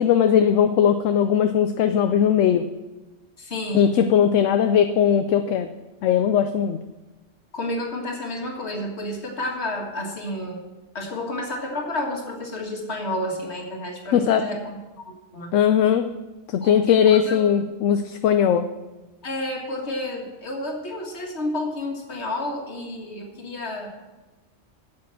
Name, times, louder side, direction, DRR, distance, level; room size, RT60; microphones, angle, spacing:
voice 1, 0.0-2.7 3.7-5.7 6.0-6.8 14.1-14.5 15.5-16.1 16.5-18.7, left 8 dB, 80° left, 8 dB, 0.9 m, -19 dB
voice 2, 3.4-3.9 7.5-10.6 10.9-14.8 15.0-15.5 16.6-17.5 19.2-23.9, left 1 dB, 60° left, 1 dB, 2.0 m, -30 dB
8.5 x 7.7 x 7.5 m, 1.2 s
omnidirectional pair, 1.3 m